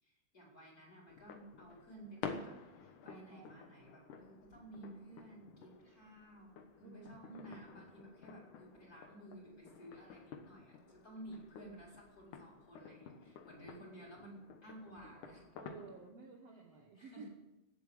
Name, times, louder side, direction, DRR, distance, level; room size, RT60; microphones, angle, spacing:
voice 1, 0.0-6.5 6.8-15.4 16.9-17.3, right 1 dB, 25° left, -2 dB, 4.5 m, -54 dB
sound 1, 1.1-16.1, left 6 dB, 70° left, 2.6 m, -52 dB
voice 2, 3.0-3.5 6.8-7.2 15.0-17.3, right 4 dB, 55° right, 1 dB, 2.0 m, -55 dB
17.5 x 7.9 x 7.8 m, 0.97 s
omnidirectional pair, 3.9 m